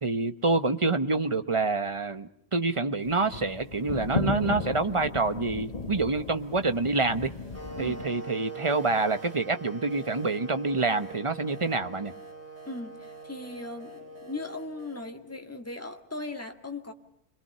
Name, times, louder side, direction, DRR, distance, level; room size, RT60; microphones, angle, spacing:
voice 1, 0.0-7.3 7.8-12.1, right 3 dB, 30° right, 9 dB, 1.1 m, -27 dB
sound 1, 3.0-8.0, left 3 dB, 35° left, 1.5 m, -35 dB
sound 2, 6.0-15.0, right 1 dB, 75° right, 5.1 m, -56 dB
sound 3, 7.5-15.5, right 3 dB, 15° right, 2.7 m, -43 dB
voice 2, 12.7-16.9, left 2 dB, 15° left, 4 dB, 2.0 m, -38 dB
28.0 x 22.0 x 6.8 m, 0.75 s
omnidirectional pair, 1.1 m